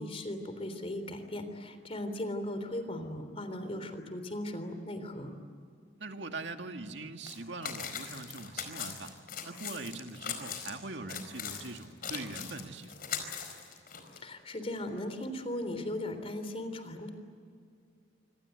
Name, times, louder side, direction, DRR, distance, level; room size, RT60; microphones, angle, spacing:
voice 1, 0.0-5.3 14.2-17.1, left 1 dB, 35° left, 9 dB, 3.5 m, -37 dB
voice 2, 6.0-9.1 9.4-13.1, right 3 dB, 85° right, 5 dB, 2.1 m, -42 dB
sound 1, 7.2-7.4 7.6-10.7 11.1-14.2, left 7 dB, 55° left, 4.5 m, -40 dB
26.5 x 26.0 x 8.2 m, 2.3 s
head